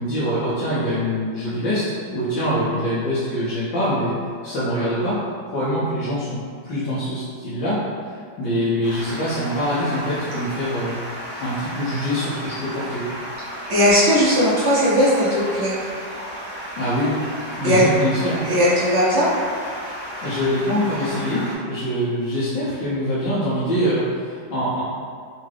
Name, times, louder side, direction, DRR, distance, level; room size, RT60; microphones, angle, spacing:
voice 1, 0.0-4.1 4.4-5.2 5.5-6.4 6.6-11.0 11.4-13.1 16.7-17.3 17.6-18.4 20.2-24.8, equal, 80° left, -10 dB, 1.4 m, -24 dB
Stream, 8.8-21.5, equal, 35° left, 0.5 m, -33 dB
voice 2, 13.7-15.7 17.6-17.8 18.4-19.3, equal, 60° right, -9 dB, 0.7 m, -17 dB
3.7 x 2.3 x 3.1 m, 2.1 s
omnidirectional pair, 2.0 m